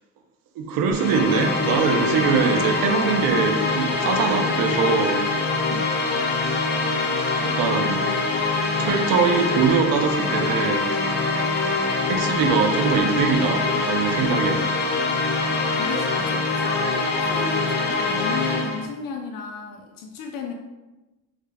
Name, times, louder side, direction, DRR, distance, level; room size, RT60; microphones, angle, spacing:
voice 1, 0.6-5.2 6.4-6.6 7.4-8.1 8.8-11.0 12.1-14.7, right 5 dB, 90° right, 4 dB, 0.6 m, -22 dB
sound 1, 0.9-18.9, left 3 dB, 30° left, 0.4 m, -24 dB
voice 2, 15.3-20.5, left 5 dB, 80° left, 1 dB, 0.5 m, -34 dB
3.7 x 2.2 x 3.3 m, 1.1 s
cardioid pair, 165°, 33 cm